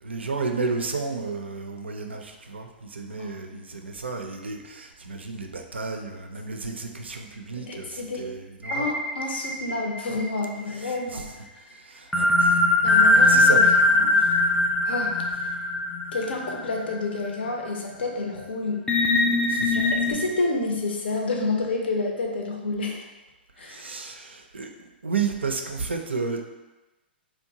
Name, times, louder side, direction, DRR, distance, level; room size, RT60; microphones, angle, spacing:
voice 1, 0.0-8.9 10.8-11.2 11.7-12.6 13.1-13.8 19.4-20.2 23.6-26.4, right 4 dB, 85° right, 4 dB, 0.4 m, -32 dB
voice 2, 3.2-3.6 7.6-8.3 8.7-11.3 12.8-14.4 14.8-15.5 16.1-18.9 19.7-23.1 23.6-23.9, left 3 dB, 70° left, 1 dB, 0.5 m, -29 dB
sound 1, 8.6-10.6 12.1-17.0 17.4-17.5 18.9-20.1, left 2 dB, 10° left, 0.4 m, -21 dB
2.8 x 2.2 x 2.6 m, 1.1 s
figure-of-eight pair, 120°, 6 cm